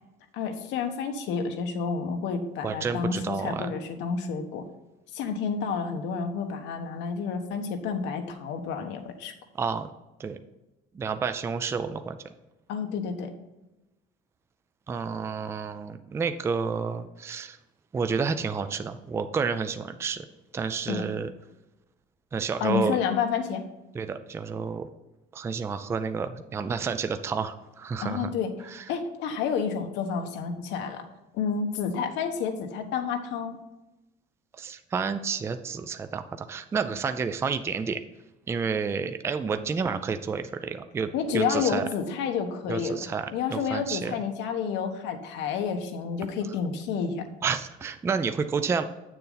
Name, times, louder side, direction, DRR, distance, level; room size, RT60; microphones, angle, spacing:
voice 1, 0.3-4.6 5.1-9.3 12.7-13.3 20.9-21.0 22.6-23.6 28.0-28.5 28.9-31.0 31.3-33.6 41.1-43.0 43.3-47.3, left 6 dB, 75° left, 5 dB, 1.2 m, -30 dB
voice 2, 2.6-3.7 9.6-9.9 10.2-10.4 10.9-12.2 14.9-17.6 17.9-20.3 20.5-21.3 22.3-23.0 23.9-24.9 25.3-28.3 28.6-28.9 34.6-38.0 38.5-41.8 42.7-43.3 43.5-44.2 47.4-48.8, right 5 dB, 15° right, 9 dB, 0.4 m, -30 dB
8.4 x 6.8 x 3.9 m, 1.0 s
cardioid pair, 165°, 19 cm